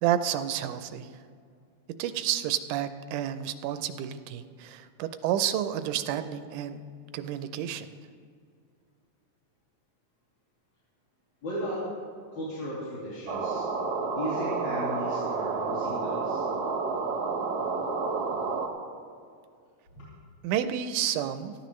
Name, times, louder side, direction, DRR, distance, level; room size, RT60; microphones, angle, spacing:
voice 1, 0.0-1.1 2.0-6.8 7.1-7.9 20.4-21.6, right 10 dB, 90° right, 10 dB, 2.1 m, -30 dB
voice 2, 11.4-11.8 12.3-13.7 14.1-16.5 20.0-20.1, equal, 70° left, -11 dB, 4.4 m, -36 dB
sound 1, 13.3-18.7, right 4 dB, 75° right, 0.9 m, -30 dB
18.5 x 13.0 x 3.1 m, 2.2 s
omnidirectional pair, 3.5 m